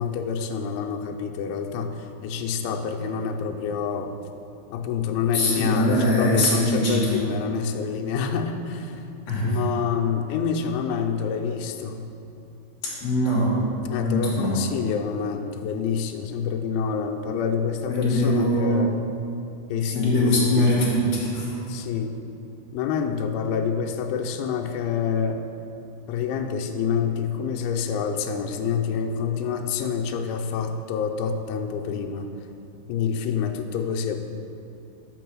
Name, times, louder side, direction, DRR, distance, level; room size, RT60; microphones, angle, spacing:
voice 1, 0.0-4.1 4.7-9.1 9.4-12.1 13.9-19.0 19.7-20.7 21.7-22.1 22.7-25.4 26.1-32.3 32.9-34.2, left 6 dB, 85° left, 4 dB, 3.0 m, -27 dB
voice 2, 5.3-7.2 9.3-9.6 13.0-13.5 13.9-14.5 17.9-18.8 19.8-21.6, left 1 dB, 50° left, -6 dB, 2.2 m, -22 dB
6.3 x 6.1 x 6.1 m, 2.7 s
omnidirectional pair, 5.3 m